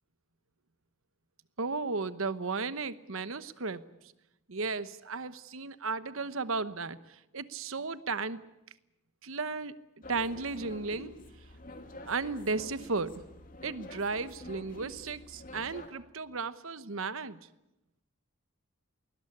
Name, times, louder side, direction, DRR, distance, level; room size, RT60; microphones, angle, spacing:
voice 1, 1.6-3.9 4.5-8.4 9.2-9.7 10.1-11.1 12.1-13.1 13.6-17.4, right 4 dB, 65° right, 14 dB, 1.1 m, -34 dB
sound 1, 10.0-15.9, left 1 dB, 40° left, 2.7 m, -48 dB
20.5 x 20.0 x 9.7 m, 0.90 s
head